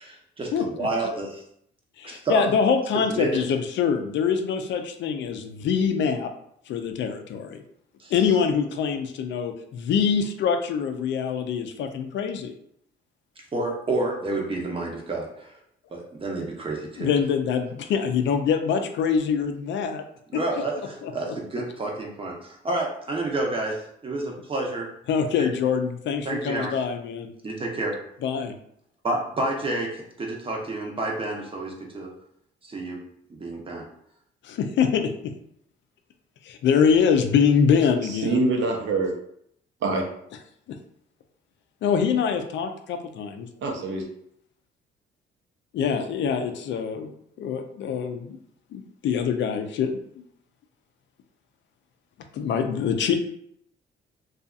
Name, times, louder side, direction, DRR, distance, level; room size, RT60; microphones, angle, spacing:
voice 1, 0.0-1.4 2.0-2.4 3.1-3.5 8.0-8.1 13.5-15.6 15.9-17.1 20.3-24.9 25.4-25.5 26.2-26.7 27.4-28.0 29.0-32.1 32.6-33.0 33.3-33.9, right 2 dB, 25° right, -1 dB, 0.7 m, -29 dB
voice 2, 2.0-6.3 6.7-7.6 8.1-12.5 17.0-20.0 21.0-21.3 25.1-27.3 28.2-28.5 34.4-35.3 36.4-38.5 40.7-40.8 41.8-43.5 45.7-48.4 48.7-49.9 50.2-50.3 52.3-53.2, left 6 dB, 65° left, 6 dB, 0.4 m, -24 dB
voice 3, 38.1-39.1 39.8-40.0 43.6-44.0, right 3 dB, 70° right, 1 dB, 0.6 m, -25 dB
2.6 x 2.4 x 2.4 m, 0.71 s
cardioid pair, 90°, 20 cm